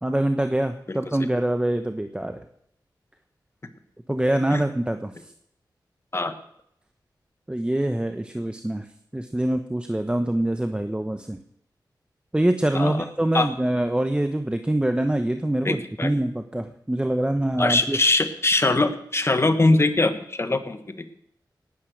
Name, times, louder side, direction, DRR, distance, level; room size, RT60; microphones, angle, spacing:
voice 1, 0.0-2.4 4.1-5.3 7.5-8.9 9.1-11.4 12.3-18.0, right 1 dB, 15° right, 7 dB, 1.0 m, -25 dB
voice 2, 12.7-13.1 13.3-13.5 15.6-16.1 17.6-20.9, left 2 dB, 35° left, 9 dB, 1.6 m, -22 dB
18.5 x 9.4 x 6.6 m, 0.72 s
wide cardioid pair, 75°, 8 cm